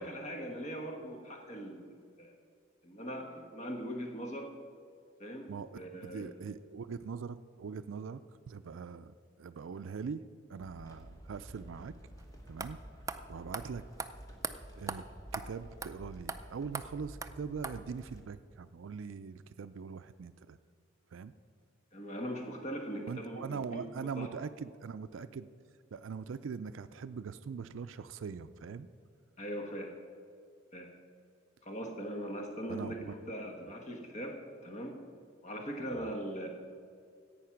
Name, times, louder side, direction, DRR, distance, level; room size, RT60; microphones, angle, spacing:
voice 1, 0.0-1.8 2.2-2.3 2.8-4.5 5.2-6.3 21.9-23.8 24.2-24.3 29.4-29.9 30.7-30.9 31.6-35.0 35.4-36.5, equal, 35° left, 3 dB, 1.2 m, -40 dB
voice 2, 6.0-8.2 8.5-10.2 10.5-11.9 12.5-12.8 13.0-13.8 14.8-15.0 15.3-20.6 21.1-21.3 23.0-25.5 25.9-28.9 32.7-33.1 35.9-36.0, right 5 dB, 75° right, 12 dB, 0.4 m, -42 dB
sound 1, 10.6-18.2, equal, 15° left, 1.3 m, -51 dB
sound 2, 12.2-12.3 12.6-12.7 13.1-13.2 13.5-13.6 14.0-14.1 14.4-14.5 14.9-15.0 15.3-15.5 15.8-15.9 16.3-16.4 16.7-16.9 17.2-17.3 17.6-17.8, right 4 dB, 15° right, 0.4 m, -37 dB
15.0 x 8.8 x 5.8 m, 2.3 s
head